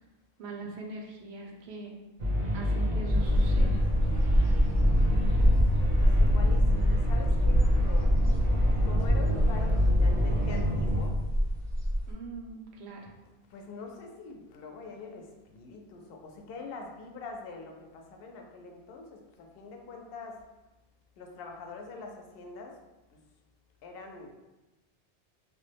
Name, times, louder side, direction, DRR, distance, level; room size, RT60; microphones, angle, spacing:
voice 1, 0.4-2.0 2.5-3.8 12.1-13.1, right 3 dB, 85° right, 0 dB, 0.9 m, -42 dB
sound 1, 2.2-11.0, equal, 45° right, 0.6 m, -27 dB
sound 2, 3.1-12.1, equal, ahead, 0.4 m, -25 dB
voice 2, 5.7-8.3 8.8-11.1 13.5-20.4 21.2-22.8 23.1-23.2 23.8-24.4, left 4 dB, 70° left, 2 dB, 0.7 m, -44 dB
3.0 x 2.1 x 3.2 m, 1.0 s
omnidirectional pair, 1.1 m